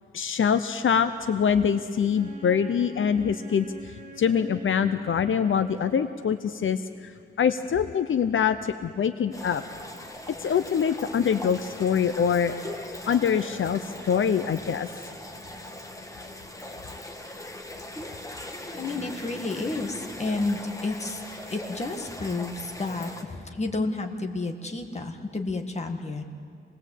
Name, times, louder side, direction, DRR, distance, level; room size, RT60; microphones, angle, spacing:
voice 1, 0.1-7.1 7.4-9.6 10.4-12.5 13.1-14.9, left 7 dB, 75° left, 11 dB, 0.7 m, -24 dB
Wind instrument woodwind instrument, 2.1-6.5, right 2 dB, 40° right, 3.3 m, -46 dB
sound 1, 9.3-23.2, left 1 dB, 15° left, 1.8 m, -40 dB
voice 2, 18.8-21.2 21.5-26.2, left 3 dB, 35° left, 4 dB, 1.8 m, -31 dB
27.0 x 20.0 x 8.3 m, 2.2 s
wide cardioid pair, 155°, 20 cm